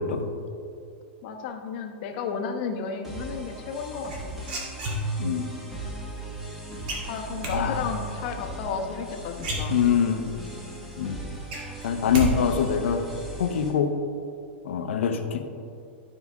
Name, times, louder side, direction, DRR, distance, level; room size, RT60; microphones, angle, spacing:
voice 1, 1.2-4.4 7.1-9.8, left 5 dB, 50° left, 4 dB, 1.0 m, -33 dB
sound 1, 3.0-13.7, right 1 dB, 5° right, 1.4 m, -38 dB
sound 2, 4.1-5.4 6.9-7.6 9.0-9.1 9.4-10.2 10.6-10.7 11.0-12.3 12.5-13.0, right 2 dB, 55° right, 2.2 m, -30 dB
voice 2, 7.5-7.9 9.7-10.2 11.0-11.2 11.8-13.0 13.4-13.9 14.6-15.5, left 7 dB, 80° left, 6 dB, 0.8 m, -24 dB
13.0 x 5.0 x 3.6 m, 2.5 s
supercardioid pair, 150°, 7 cm